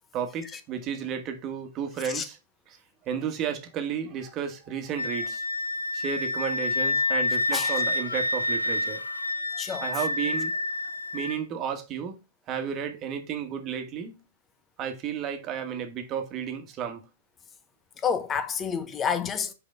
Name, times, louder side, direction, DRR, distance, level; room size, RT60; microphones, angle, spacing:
voice 1, 0.1-2.4 2.7-2.8 3.0-5.4 5.9-9.3 9.8-10.6 11.1-12.2 12.5-14.1 14.8-17.0 18.8-18.9 19.4-19.5, right 7 dB, 35° right, 1.4 m, -33 dB
Wind instrument woodwind instrument, 5.0-11.4, left 2 dB, 85° left, 0.4 m, -28 dB
voice 2, 18.0-19.5, left 7 dB, 20° left, 0.8 m, -28 dB
5.3 x 5.0 x 3.6 m
figure-of-eight pair, 100°, 0 cm